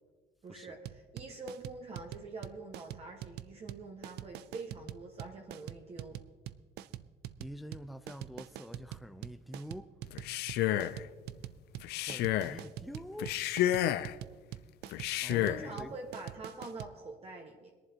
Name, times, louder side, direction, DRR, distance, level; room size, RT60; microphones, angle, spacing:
voice 1, 0.4-6.2 10.7-11.0 15.4-17.7, right 3 dB, 35° right, 1.4 m, -45 dB
sound 1, 0.8-16.9, right 13 dB, 75° right, 0.4 m, -44 dB
voice 2, 7.4-9.9 11.9-13.4 15.2-15.9, equal, ahead, 0.4 m, -46 dB
Male speech man speaking, 10.1-11.0 11.8-12.6 13.2-14.2 14.9-15.7, left 13 dB, 75° left, 0.5 m, -31 dB
21.5 x 11.0 x 2.9 m
cardioid pair, 110°, 17 cm